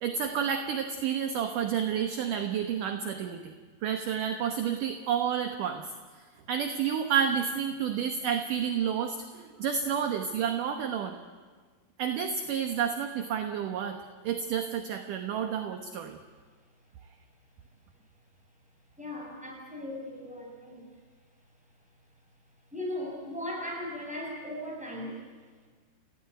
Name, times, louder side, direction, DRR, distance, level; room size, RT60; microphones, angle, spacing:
voice 1, 0.0-3.5 3.8-5.9 6.5-11.2 12.0-16.2, right 8 dB, 65° right, 6 dB, 2.2 m, -30 dB
voice 2, 19.0-20.8 22.7-25.2, left 1 dB, ahead, -1 dB, 6.5 m, -37 dB
30.0 x 16.5 x 9.7 m, 1.5 s
omnidirectional pair, 5.0 m